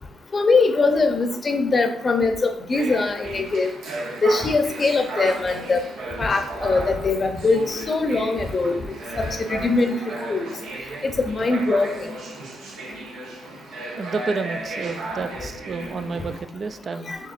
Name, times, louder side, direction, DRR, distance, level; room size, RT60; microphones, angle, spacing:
voice 1, 0.3-3.7 4.2-5.8 6.2-8.8 9.2-10.0 10.3-10.5 11.0-12.1 17.1-17.2, left 3 dB, 35° left, 6 dB, 0.6 m, -22 dB
sound 1, 2.7-16.4, right 2 dB, 80° right, 1.0 m, -34 dB
voice 2, 13.9-17.1, right 4 dB, 45° right, 10 dB, 0.4 m, -30 dB
6.7 x 3.0 x 2.5 m, 0.70 s
cardioid pair, 90°, 0 cm